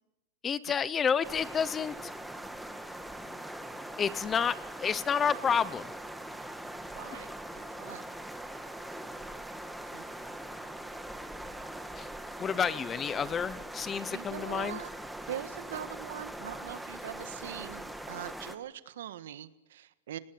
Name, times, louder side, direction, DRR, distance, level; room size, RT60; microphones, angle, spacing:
voice 1, 0.4-1.9 4.0-4.5 4.8-5.9 12.0-12.1 12.4-14.8, left 7 dB, 20° left, 18 dB, 0.8 m, -29 dB
sound 1, 1.2-18.6, right 1 dB, ahead, 1.5 m, -42 dB
voice 2, 6.9-7.3 7.5-8.0 9.9-10.0 14.1-14.9 15.2-20.2, right 11 dB, 90° right, 12 dB, 1.6 m, -42 dB
27.5 x 19.5 x 8.8 m, 0.99 s
supercardioid pair, 150°, 0 cm